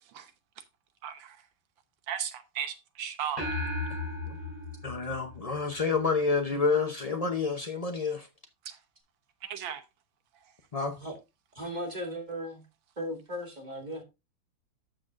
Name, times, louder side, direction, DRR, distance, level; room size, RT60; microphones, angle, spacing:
voice 1, 1.0-1.4 2.1-3.5 9.4-9.8, right 9 dB, 80° right, 1.7 m, -35 dB
sound 1, 3.4-6.0, left 2 dB, 20° left, 4.9 m, -35 dB
voice 2, 4.8-8.3 10.7-11.0, left 4 dB, 70° left, 0.3 m, -29 dB
voice 3, 11.5-12.6 13.0-14.0, equal, 25° right, 2.1 m, -36 dB
13.0 x 5.9 x 2.5 m
omnidirectional pair, 2.1 m